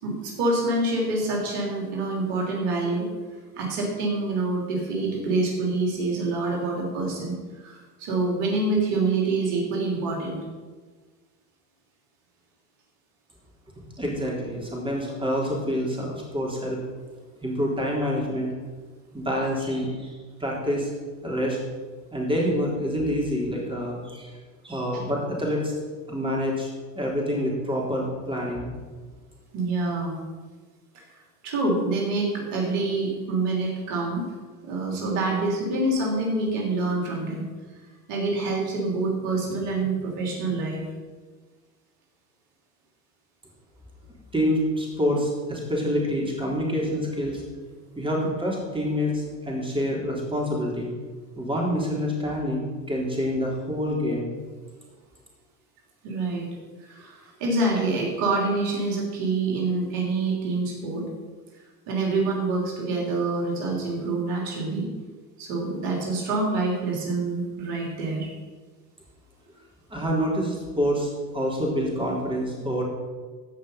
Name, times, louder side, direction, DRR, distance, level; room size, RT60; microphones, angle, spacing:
voice 1, 0.0-3.1 3.6-10.4 29.5-30.2 30.9-31.0 31.4-34.2 34.6-37.5 38.1-40.8 56.0-56.5 56.8-61.0 61.9-64.9 65.4-68.3, right 3 dB, 70° right, -1 dB, 3.3 m, -26 dB
voice 2, 14.0-16.8 17.4-18.5 19.1-20.9 21.2-21.6 22.1-24.3 24.6-25.7 26.1-26.7 27.0-28.7 44.3-47.4 48.0-50.9 51.4-54.3 69.9-72.8, equal, 10° right, -3 dB, 3.6 m, -27 dB
15.5 x 5.3 x 5.7 m, 1.4 s
hypercardioid pair, 80°, 48 cm